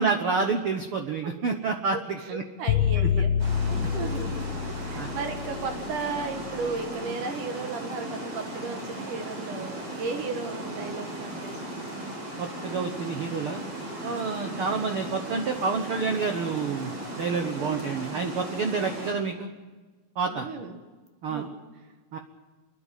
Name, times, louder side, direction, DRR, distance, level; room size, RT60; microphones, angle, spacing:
voice 1, 0.0-2.4 3.0-3.1 3.7-3.9 5.0-5.1 12.4-13.6 14.0-19.5 20.1-20.5 21.2-21.5 22.1-22.2, right 5 dB, 85° right, 6 dB, 1.2 m, -29 dB
voice 2, 1.9-3.3 3.6-4.4 4.7-11.9 17.5-17.9 20.3-20.7 21.3-21.5, right 4 dB, 60° right, 6 dB, 3.0 m, -35 dB
sound 1, 2.7-6.8, left 8 dB, 80° left, 2.7 m, -27 dB
Water, 3.4-19.1, right 1 dB, 40° right, 5.1 m, -37 dB
28.5 x 11.0 x 9.0 m, 1.3 s
omnidirectional pair, 4.3 m